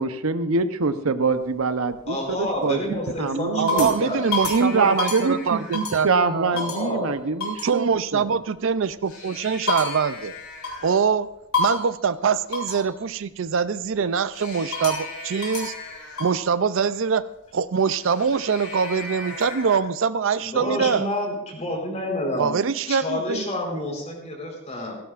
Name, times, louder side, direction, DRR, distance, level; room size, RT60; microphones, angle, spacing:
voice 1, 0.0-2.8 3.2-3.9 4.5-8.3, right 4 dB, 80° right, 10 dB, 0.8 m, -24 dB
sound 1, 1.2-1.9 2.5-2.9 3.3-6.2 6.6-6.9 7.4-7.7 8.9-11.0 11.5-12.0 12.5-12.9 14.3-16.4 17.8-19.8, left 3 dB, 80° left, 4.6 m, -31 dB
voice 2, 2.1-4.3 6.5-7.1 20.4-22.6 22.9-25.0, left 1 dB, 30° left, 1 dB, 4.1 m, -29 dB
voice 3, 3.6-6.1 6.3-6.5 7.6-10.3 10.8-11.3 11.6-15.7 16.2-17.2 17.5-21.1 22.4-23.4, right 6 dB, 60° right, 14 dB, 0.4 m, -23 dB
17.0 x 16.5 x 2.5 m, 0.89 s
head